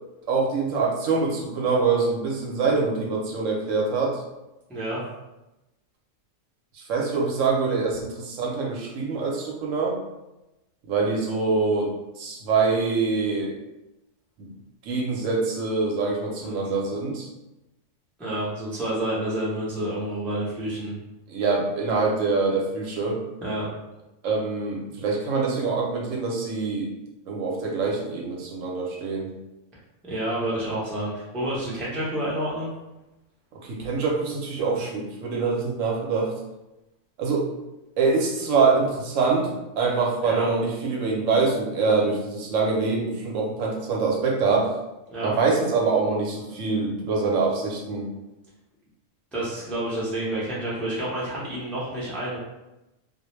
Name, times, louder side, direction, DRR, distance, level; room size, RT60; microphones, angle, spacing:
voice 1, 0.3-4.2 6.7-10.0 10.9-13.5 14.4-14.5 14.8-17.3 21.3-23.2 24.2-26.9 27.3-29.3 33.6-36.3 37.2-37.5 38.0-39.5 39.8-44.7 45.2-48.1, right 4 dB, 75° right, -1 dB, 0.9 m, -24 dB
voice 2, 4.7-5.0 16.4-16.6 18.2-20.9 23.4-23.7 30.1-32.7 40.2-40.5 45.1-45.3 49.3-52.4, right 1 dB, ahead, -8 dB, 0.4 m, -29 dB
2.3 x 2.1 x 3.0 m, 0.97 s
omnidirectional pair, 1.3 m